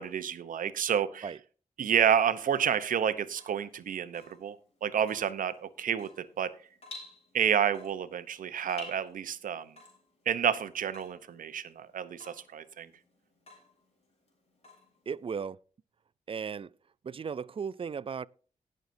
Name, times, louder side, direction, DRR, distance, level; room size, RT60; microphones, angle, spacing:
voice 1, 0.0-1.3 1.8-4.6 4.8-6.5 7.3-9.7 10.3-12.9, right 8 dB, 75° right, 0.8 m, -29 dB
Water tap faucet / Drip, 3.2-15.4, left 2 dB, 45° left, 4.4 m, -53 dB
voice 2, 15.1-15.6 16.3-16.7 17.0-18.3, right 6 dB, 40° right, 0.5 m, -36 dB
19.0 x 6.6 x 2.7 m
supercardioid pair, 50°, 14 cm